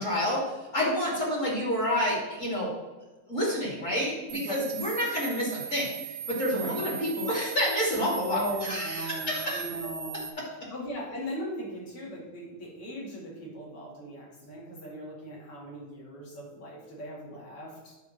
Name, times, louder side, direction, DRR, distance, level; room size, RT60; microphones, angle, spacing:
voice 1, 0.0-2.7 3.3-9.6, equal, 25° left, -4 dB, 2.7 m, -29 dB
voice 2, 4.3-4.7 6.6-6.9 8.3-10.3 10.5-17.9, equal, 50° left, -4 dB, 3.1 m, -39 dB
sound 1, 4.3-10.3, right 8 dB, 70° right, 1.1 m, -39 dB
9.3 x 3.9 x 7.2 m, 1.2 s
omnidirectional pair, 3.5 m